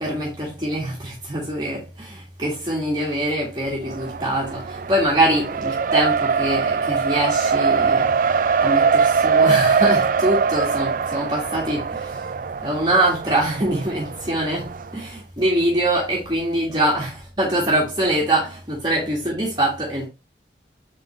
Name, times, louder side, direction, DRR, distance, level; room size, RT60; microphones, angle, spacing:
voice 1, 0.0-12.3 12.6-20.1, right 1 dB, 25° right, 1.8 m, -24 dB
Race car auto racing, 3.9-14.9, right 5 dB, 50° right, 0.4 m, -22 dB
7.1 x 5.3 x 3.1 m
head